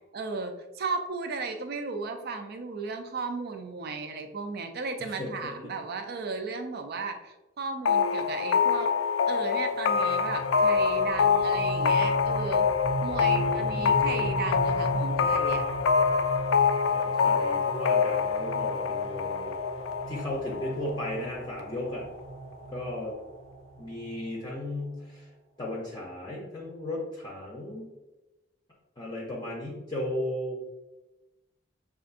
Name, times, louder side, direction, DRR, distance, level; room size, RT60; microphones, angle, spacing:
voice 1, 0.1-8.9 9.3-12.7 13.0-15.6, right 4 dB, 55° right, 6 dB, 0.5 m, -35 dB
voice 2, 5.0-5.7 13.3-14.2 16.8-19.5 20.1-22.1 22.7-23.2 23.8-25.3 25.6-27.9 29.0-30.6, left 1 dB, 25° left, -3 dB, 0.6 m, -36 dB
sound 1, 7.9-21.4, left 6 dB, 85° left, 0.3 m, -26 dB
sound 2, 9.9-24.8, right 2 dB, 80° right, 0.8 m, -37 dB
6.6 x 2.5 x 2.5 m, 1.1 s
head